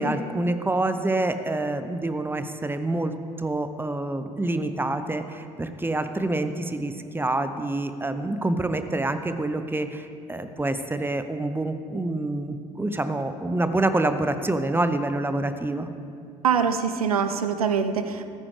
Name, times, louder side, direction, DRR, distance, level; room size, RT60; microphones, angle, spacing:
voice 1, 0.0-3.1 3.4-15.9, right 2 dB, 10° right, 9 dB, 0.8 m, -27 dB
voice 2, 16.4-18.3, right 6 dB, 80° right, 10 dB, 0.5 m, -24 dB
14.0 x 14.0 x 3.3 m, 2.4 s
figure-of-eight pair, 50°, 18 cm